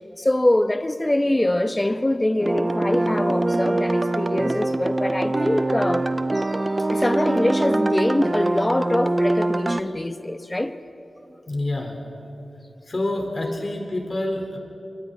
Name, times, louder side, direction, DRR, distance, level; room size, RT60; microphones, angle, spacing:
voice 1, 0.2-6.1 6.3-6.6 6.9-10.8, left 1 dB, 25° left, 1.2 m, -23 dB
sound 1, 2.4-9.8, right 2 dB, 35° right, 0.8 m, -23 dB
voice 2, 11.5-12.0 12.9-14.6, left 1 dB, 50° left, 4.3 m, -27 dB
27.0 x 24.0 x 4.2 m
cardioid pair, 40°, 0 cm